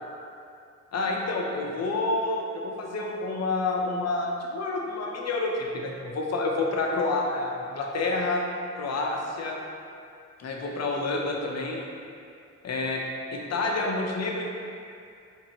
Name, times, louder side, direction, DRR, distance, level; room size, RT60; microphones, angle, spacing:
voice 1, 0.9-8.4 8.8-9.6 10.4-11.8 12.6-13.0 13.3-14.5, left 2 dB, 60° left, 0 dB, 0.7 m, -28 dB
4.6 x 3.3 x 2.9 m, 2.4 s
cardioid pair, 80°, 29 cm